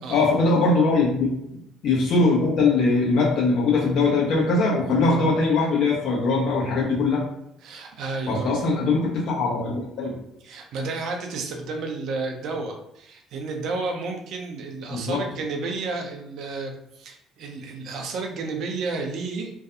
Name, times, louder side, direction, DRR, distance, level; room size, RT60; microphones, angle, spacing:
voice 1, 0.1-7.2 8.3-10.2 14.9-15.2, left 3 dB, 60° left, -3 dB, 0.8 m, -21 dB
voice 2, 7.6-8.6 10.4-19.5, right 3 dB, 60° right, 3 dB, 0.4 m, -31 dB
2.6 x 2.2 x 2.5 m, 0.81 s
figure-of-eight pair, 50°, 0 cm